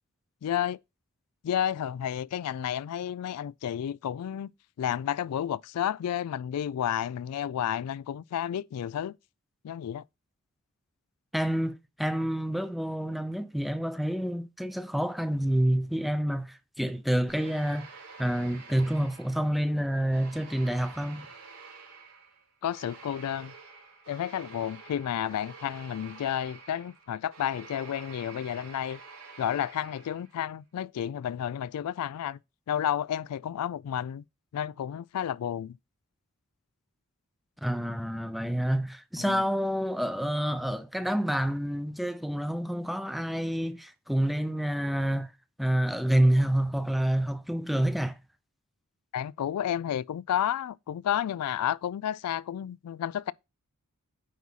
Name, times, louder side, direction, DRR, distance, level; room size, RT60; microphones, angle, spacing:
voice 1, 0.4-0.8 1.4-4.5 4.8-9.1 9.6-10.0 22.6-23.5 24.1-29.0 29.4-32.4 32.7-34.2 34.5-35.8 39.2-39.5 49.1-53.3, left 10 dB, 90° left, 0.3 m, -31 dB
voice 2, 11.3-17.9 18.2-21.3 37.6-45.3 45.6-48.2, right 1 dB, ahead, 0.5 m, -28 dB
sound 1, 17.3-19.7 20.1-30.4, right 4 dB, 80° right, 3.0 m, -49 dB
9.4 x 4.1 x 4.1 m
head